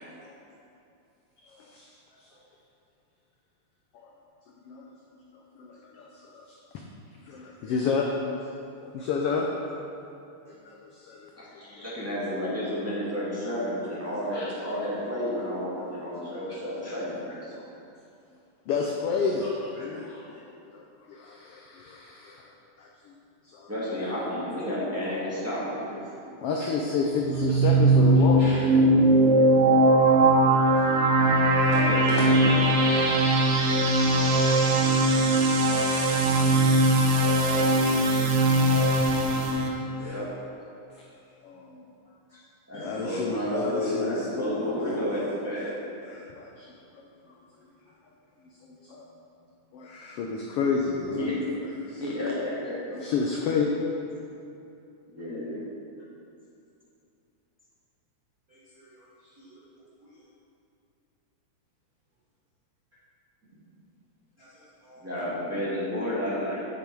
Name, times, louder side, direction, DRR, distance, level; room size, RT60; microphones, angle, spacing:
voice 1, 1.4-1.9 3.9-4.1 4.7-5.0 5.6-6.5 7.3-8.3 8.8-9.5 10.5-11.3 11.7-11.9 18.7-20.5 20.7-20.8 21.1-22.4 22.8-22.9 23.4-23.7 26.2-29.1 31.2-31.5 32.1-32.3 33.8-33.9 35.6-36.1 37.3-38.1 38.5-38.9 39.1-40.1 41.4-41.8 42.7-45.0 46.0-46.7 48.7-49.1 49.7-51.3 51.8-52.0 52.9-53.7, left 4 dB, 90° left, -1 dB, 1.3 m, -31 dB
voice 2, 11.3-17.5 23.7-26.0 29.0-29.6 31.7-32.7 40.0-40.3 42.7-45.8 51.2-51.6 52.0-52.9 55.1-55.6 65.0-66.7, left 1 dB, 10° right, -9 dB, 1.0 m, -31 dB
voice 3, 19.8-20.1 28.4-28.6 36.7-36.9 58.5-58.9 59.4-59.6 64.4-65.0, equal, 55° right, -9 dB, 0.9 m, -48 dB
sound 1, 27.1-39.7, right 2 dB, 75° right, 1.3 m, -20 dB
7.7 x 6.8 x 4.6 m, 2.7 s
omnidirectional pair, 3.5 m